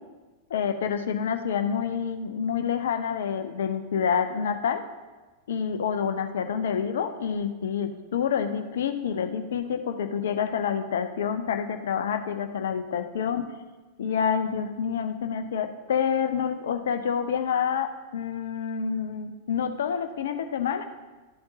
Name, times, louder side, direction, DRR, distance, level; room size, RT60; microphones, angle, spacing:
voice 1, 0.5-4.8 5.5-13.4 14.0-20.8, left 7 dB, 60° left, 8 dB, 0.6 m, -28 dB
12.5 x 7.8 x 2.7 m, 1.2 s
figure-of-eight pair, 90°, 0 cm